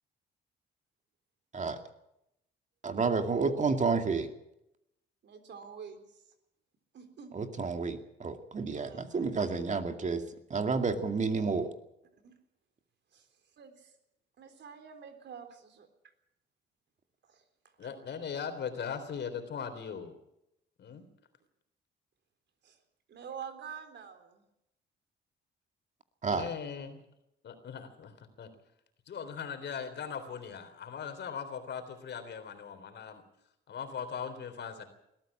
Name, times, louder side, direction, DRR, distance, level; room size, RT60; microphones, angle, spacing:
voice 1, 2.8-4.3 7.3-10.2 10.5-11.7 26.2-26.5, right 4 dB, 40° right, 7 dB, 2.3 m, -30 dB
voice 2, 5.2-6.0 6.9-7.4 8.7-9.4 12.1-12.4 13.1-13.3 13.6-13.9 14.4-15.9 17.3-17.4 22.6-22.8 23.1-24.4 34.6-34.8, right 7 dB, 60° right, 7 dB, 3.8 m, -47 dB
voice 3, 17.8-20.1 20.8-21.0 26.3-27.0 27.4-28.5 29.1-33.2 33.7-34.8, left 7 dB, 60° left, 8 dB, 3.6 m, -39 dB
21.0 x 14.0 x 8.7 m, 0.84 s
cardioid pair, 90°, 20 cm